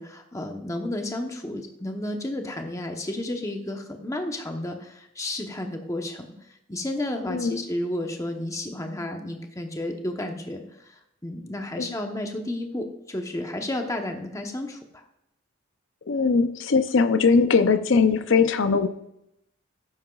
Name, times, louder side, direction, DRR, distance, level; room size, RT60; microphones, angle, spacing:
voice 1, 0.0-15.0, left 1 dB, 15° left, 4 dB, 0.9 m, -32 dB
voice 2, 7.3-7.6 11.8-11.9 16.1-18.9, left 5 dB, 70° left, 10 dB, 0.6 m, -20 dB
12.5 x 9.7 x 2.4 m, 0.81 s
head